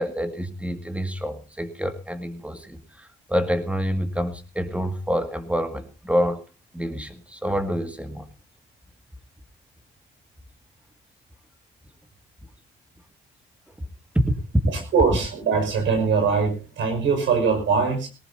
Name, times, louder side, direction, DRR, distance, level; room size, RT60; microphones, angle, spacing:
voice 1, 0.0-6.4 6.7-8.3 13.8-13.9 14.1-14.3, equal, 5° right, 8 dB, 2.0 m, -27 dB
voice 2, 14.7-18.1, right 5 dB, 75° right, 5 dB, 5.5 m, -22 dB
19.0 x 18.0 x 2.7 m, 0.31 s
cardioid pair, 90°, 20 cm